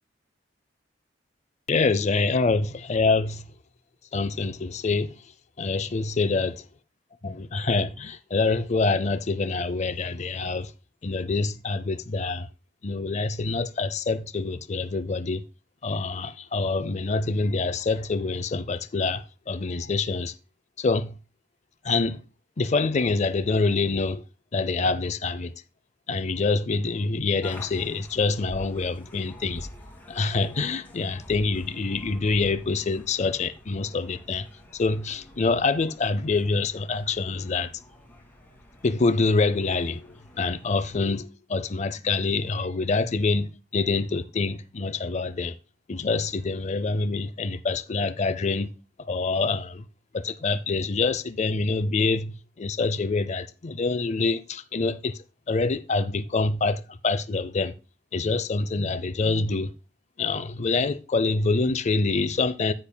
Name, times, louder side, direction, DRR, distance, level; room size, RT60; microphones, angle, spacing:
voice 1, 1.7-3.4 4.1-5.1 5.6-6.5 7.2-10.7 11.0-12.5 12.8-15.4 15.8-20.3 20.8-21.1 21.8-22.2 22.6-24.2 24.5-25.5 26.1-29.7 30.1-34.4 34.7-37.7 38.8-40.1 40.4-45.5 45.9-48.7 49.1-49.8 50.1-55.2 55.5-57.7 58.1-59.7 60.2-62.7, left 3 dB, 40° left, 0.5 m, -26 dB
sound 1, 27.4-41.1, left 1 dB, 10° left, 1.8 m, -47 dB
9.9 x 8.7 x 2.2 m
head